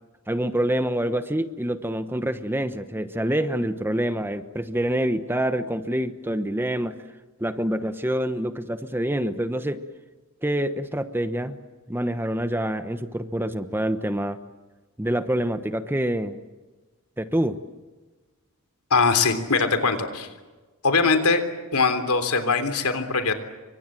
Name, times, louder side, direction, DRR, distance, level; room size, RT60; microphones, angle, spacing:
voice 1, 0.3-7.0 7.4-9.8 10.4-11.6 11.9-14.4 15.0-16.4 17.2-17.6, right 1 dB, 10° right, 10 dB, 1.0 m, -26 dB
voice 2, 18.9-20.3 20.8-21.4 21.7-23.3, left 4 dB, 85° left, 9 dB, 3.4 m, -21 dB
29.0 x 25.0 x 7.6 m, 1.3 s
head